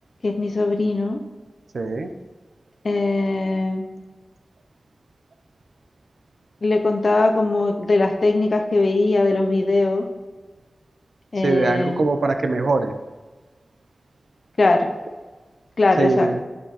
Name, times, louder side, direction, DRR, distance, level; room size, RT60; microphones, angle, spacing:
voice 1, 0.2-1.2 2.8-3.8 6.6-10.0 11.3-12.0 14.6-14.9 15.8-16.3, left 2 dB, 60° left, 4 dB, 0.8 m, -20 dB
voice 2, 1.7-2.1 11.4-12.9 16.0-16.4, right 3 dB, 85° right, 7 dB, 0.7 m, -21 dB
9.5 x 5.9 x 4.1 m, 1.3 s
wide cardioid pair, 70°, 0 cm